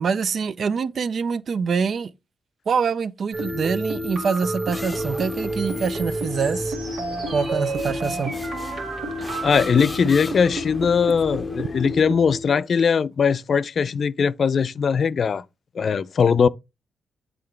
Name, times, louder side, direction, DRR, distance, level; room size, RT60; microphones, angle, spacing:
voice 1, 0.0-2.1 2.7-6.7 7.3-8.3, right 5 dB, 60° right, 0.4 m, -25 dB
sound 1, 3.3-12.6, right 1 dB, 75° right, 1.9 m, -30 dB
sound 2, 4.7-12.1, left 2 dB, 20° left, 0.6 m, -39 dB
voice 2, 9.4-15.4 15.8-16.5, left 6 dB, 55° left, 0.3 m, -20 dB
7.8 x 3.8 x 3.3 m
cardioid pair, 85°, 0 cm